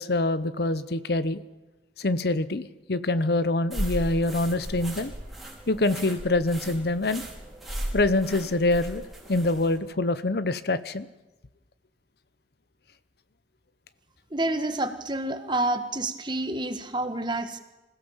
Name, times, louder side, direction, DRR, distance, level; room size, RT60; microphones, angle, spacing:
voice 1, 0.0-1.4 2.0-5.1 5.7-7.2 7.9-11.1, left 2 dB, 55° left, 14 dB, 0.8 m, -25 dB
sound 1, 3.7-9.8, right 1 dB, ahead, 4.8 m, -36 dB
voice 2, 14.3-17.6, right 2 dB, 25° right, 8 dB, 1.5 m, -28 dB
26.5 x 16.5 x 7.3 m, 1.1 s
head